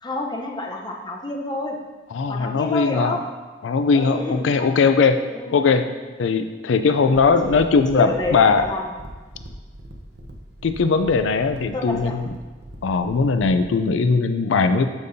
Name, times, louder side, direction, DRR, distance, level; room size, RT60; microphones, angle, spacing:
voice 1, 0.0-1.8 2.3-3.2 3.9-4.7 5.3-5.6 7.0-7.6 7.9-8.9 11.7-12.2, left 2 dB, 20° left, 0 dB, 0.7 m, -29 dB
voice 2, 2.1-3.2 3.6-5.2 5.5-5.8 6.2-8.6 10.6-12.3 12.8-14.9, left 4 dB, 80° left, 9 dB, 0.4 m, -19 dB
sound 1, 7.0-13.7, right 1 dB, 60° right, 0.8 m, -41 dB
13.0 x 5.3 x 2.7 m, 1.3 s
head